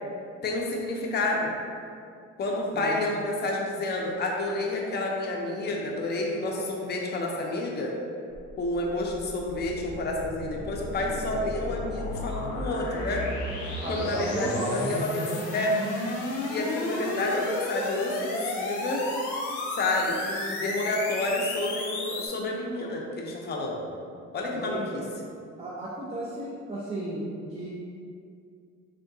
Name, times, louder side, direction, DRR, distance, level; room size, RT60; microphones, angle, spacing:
voice 1, 0.4-1.5 2.4-7.9 8.6-13.2 13.9-15.8 16.5-19.1 19.7-23.8 24.3-25.1, left 2 dB, 35° left, -1 dB, 0.5 m, -29 dB
sound 1, 8.3-22.3, left 2 dB, 90° left, 0.6 m, -33 dB
voice 2, 13.8-15.4 24.5-25.0 25.6-27.7, right 1 dB, 20° right, -6 dB, 0.5 m, -33 dB
3.6 x 2.2 x 2.6 m, 2.4 s
cardioid pair, 90°, 30 cm